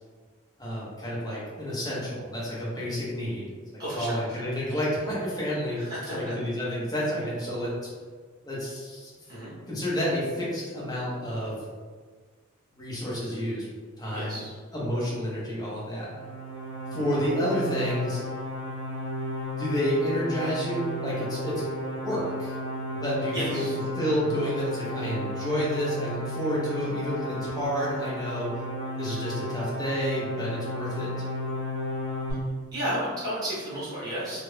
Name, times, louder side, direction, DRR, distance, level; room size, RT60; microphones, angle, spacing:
voice 1, 0.6-3.6 3.9-7.9 8.4-9.1 9.7-11.6 12.8-13.7 14.0-14.4 14.7-16.1 16.9-18.2 19.6-21.7 21.9-22.5 22.8-23.6 24.0-28.6 29.0-31.1, equal, 20° left, -7 dB, 0.8 m, -30 dB
voice 2, 3.8-4.5 5.7-6.4 9.3-9.5 14.1-14.5 16.9-17.1 23.3-23.7 26.8-27.0 32.7-34.4, equal, 20° right, -9 dB, 1.0 m, -33 dB
sound 1, 16.1-32.3, equal, 60° right, 0.7 m, -34 dB
2.5 x 2.0 x 3.1 m, 1.5 s
head